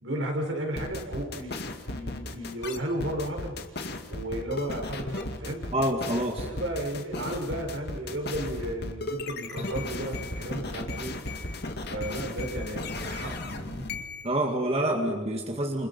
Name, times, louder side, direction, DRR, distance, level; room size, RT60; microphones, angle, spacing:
voice 1, 0.0-3.5 4.1-5.6 6.4-11.1 11.4-11.6 11.9-13.9, right 1 dB, 70° right, 2 dB, 5.4 m, -34 dB
sound 1, 0.8-14.3, left 2 dB, 55° left, 2.4 m, -35 dB
voice 2, 5.7-6.5 14.2-15.9, right 1 dB, 30° right, 2 dB, 2.2 m, -27 dB
29.5 x 28.5 x 5.7 m, 1.4 s
head